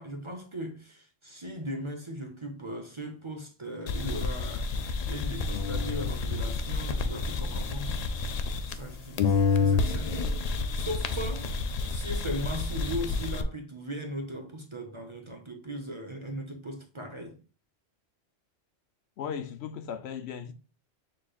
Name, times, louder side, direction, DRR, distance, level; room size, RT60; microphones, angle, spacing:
voice 1, 0.0-8.0 8.3-8.4 8.7-11.5 11.9-17.4, equal, 30° right, 0.7 m, -38 dB
sound 1, 3.9-8.9 9.2-13.4, left 4 dB, 55° left, 0.4 m, -29 dB
voice 2, 19.2-20.5, left 7 dB, 75° left, 0.9 m, -36 dB
6.4 x 3.2 x 2.3 m
omnidirectional pair, 1.2 m